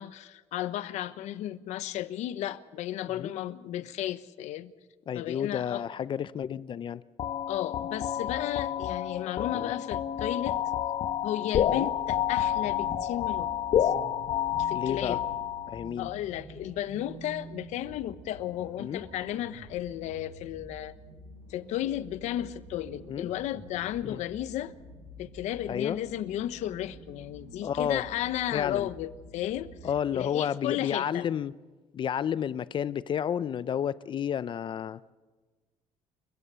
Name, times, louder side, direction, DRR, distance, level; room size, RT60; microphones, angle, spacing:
voice 1, 0.0-4.7 5.1-5.8 7.5-10.6 11.2-13.6 13.8-13.9 14.6-15.2 16.0-20.9 21.5-24.7 25.2-29.7 30.1-31.3, left 12 dB, 85° left, 1.0 m, -34 dB
voice 2, 5.1-7.0 9.5-9.7 11.7-11.9 14.7-15.2 15.7-16.1 18.8-19.0 23.1-23.3 24.0-24.2 25.7-26.0 27.6-28.0 28.5-28.9 29.8-31.5 31.9-35.0, left 8 dB, 45° left, 0.6 m, -31 dB
sound 1, 7.2-15.9, left 10 dB, 60° left, 1.1 m, -29 dB
sound 2, 11.8-30.0, right 1 dB, 85° right, 7.6 m, -49 dB
29.5 x 15.5 x 6.9 m
cardioid pair, 125°, 12 cm